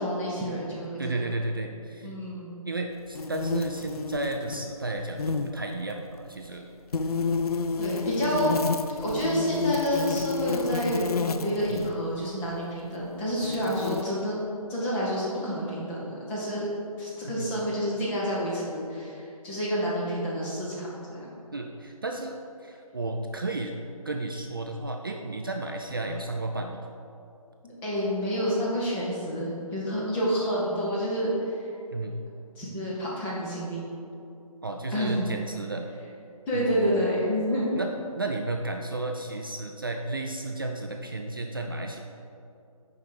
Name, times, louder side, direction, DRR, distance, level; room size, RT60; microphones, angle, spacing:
voice 1, 0.0-1.3 2.0-2.5 7.8-8.5 9.0-14.4 14.7-16.7 17.0-21.3 27.6-31.3 32.6-33.9 34.9-35.3 36.5-37.7, equal, 5° left, -6 dB, 0.7 m, -29 dB
voice 2, 1.0-2.1 2.7-6.7 11.7-11.8 17.2-17.5 21.5-23.7 24.1-26.9 31.9-32.2 34.6-35.9 36.5-37.0 37.8-37.9 38.2-42.0, right 2 dB, 35° right, 3 dB, 0.4 m, -33 dB
sound 1, 3.2-4.7 5.0-5.5 6.9-11.9 12.8-12.9 13.4-14.0, left 4 dB, 80° left, 0.4 m, -30 dB
6.8 x 4.9 x 4.6 m, 2.6 s
figure-of-eight pair, 155°, 19 cm